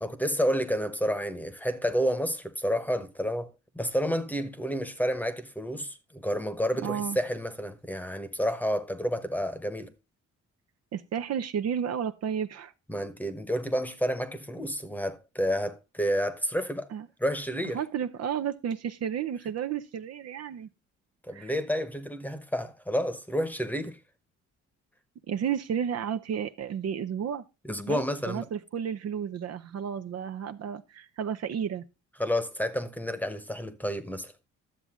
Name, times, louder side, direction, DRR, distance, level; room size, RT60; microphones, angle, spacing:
voice 1, 0.0-9.9 12.9-16.9 17.2-17.8 21.2-24.0 27.6-28.4 32.2-34.3, equal, 5° left, 1.1 m, -30 dB
voice 2, 6.8-7.2 10.9-12.7 16.9-17.1 17.5-20.7 21.3-21.5 25.3-27.4 27.9-31.8, right 8 dB, 55° right, 0.7 m, -32 dB
11.5 x 7.1 x 3.6 m
cardioid pair, 90°, 30 cm